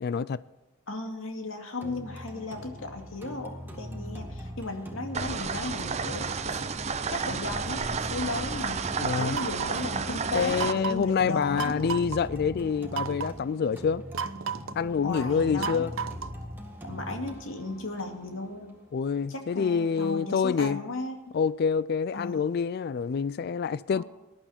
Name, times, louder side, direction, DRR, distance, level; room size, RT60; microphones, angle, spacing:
voice 1, 0.0-0.4 8.9-9.4 10.3-14.0 14.8-15.9 18.9-20.8 21.3-24.0, left 6 dB, 50° left, 0.3 m, -27 dB
voice 2, 0.9-6.6 7.1-8.9 9.1-12.0 15.0-15.8 16.9-18.7 19.3-21.3 22.1-22.5 23.9-24.0, left 2 dB, 80° left, 2.2 m, -35 dB
sound 1, 1.8-19.8, equal, 10° right, 2.0 m, -42 dB
sound 2, 5.1-10.7, right 5 dB, 35° right, 0.6 m, -31 dB
sound 3, 9.3-9.8 10.6-11.1 11.6-12.2 12.9-13.4 14.1-14.8 15.6-16.4, right 6 dB, 90° right, 0.7 m, -33 dB
19.0 x 11.5 x 4.3 m
head